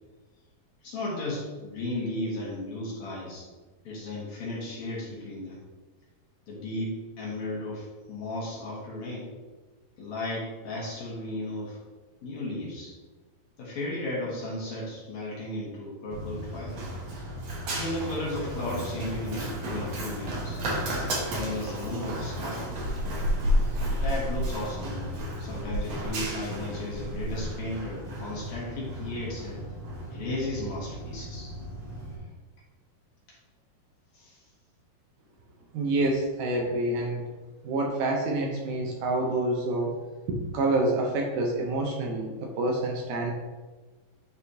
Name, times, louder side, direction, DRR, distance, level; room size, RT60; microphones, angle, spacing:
voice 1, 0.8-3.4 3.8-5.6 6.5-9.3 10.0-11.8 12.2-12.9 13.6-16.9 17.7-20.6 21.3-22.7 23.7-29.6 30.1-31.5 34.1-34.4, left 2 dB, 60° left, -5 dB, 2.4 m, -35 dB
Run, 16.1-32.2, equal, 60° right, 2.1 m, -32 dB
voice 2, 35.7-37.2 37.6-40.0 40.3-43.3, right 2 dB, 75° right, 0 dB, 2.1 m, -27 dB
9.9 x 4.2 x 2.7 m, 1.3 s
omnidirectional pair, 4.1 m